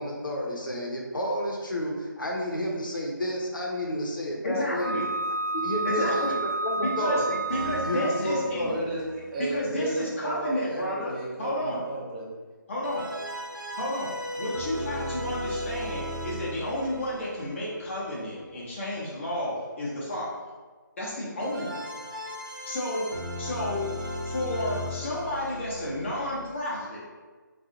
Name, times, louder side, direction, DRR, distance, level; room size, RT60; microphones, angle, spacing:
voice 1, 0.0-4.9 5.5-6.3 6.6-7.4 7.8-8.8, left 1 dB, 75° left, -2 dB, 0.8 m, -30 dB
voice 2, 4.4-5.1 5.8-6.4 6.8-7.2 7.5-8.7 9.4-11.1 11.4-11.8 12.7-13.1 13.8-20.4 21.0-21.9 22.6-23.9 24.2-27.1, left 1 dB, 35° left, -6 dB, 0.7 m, -32 dB
Wind instrument woodwind instrument, 4.8-8.4, right 2 dB, 40° right, 0.9 m, -30 dB
sound 1, 7.5-10.2 12.8-18.5 21.4-26.5, equal, 85° right, 0.6 m, -37 dB
voice 3, 8.6-12.4, right 2 dB, 20° right, -6 dB, 0.5 m, -33 dB
2.7 x 2.4 x 2.6 m, 1.4 s
figure-of-eight pair, 150°, 11 cm